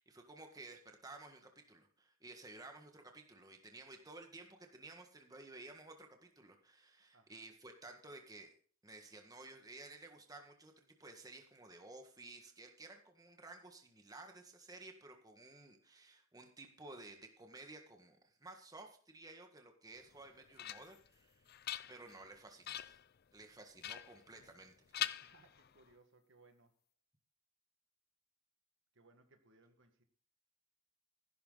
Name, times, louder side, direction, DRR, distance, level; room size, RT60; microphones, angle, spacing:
voice 1, 0.0-8.5 8.8-21.6 21.9-23.0 23.3-25.0, right 2 dB, 15° right, 4 dB, 1.7 m, -55 dB
voice 2, 7.1-7.5 25.2-26.8 28.9-30.0, right 3 dB, 55° right, 7 dB, 1.8 m, -67 dB
sound 1, 20.1-21.1 21.5-22.3 22.6-23.1 23.8-24.7 24.9-25.9, left 11 dB, 45° left, 0.5 m, -43 dB
15.0 x 11.5 x 4.0 m, 0.43 s
head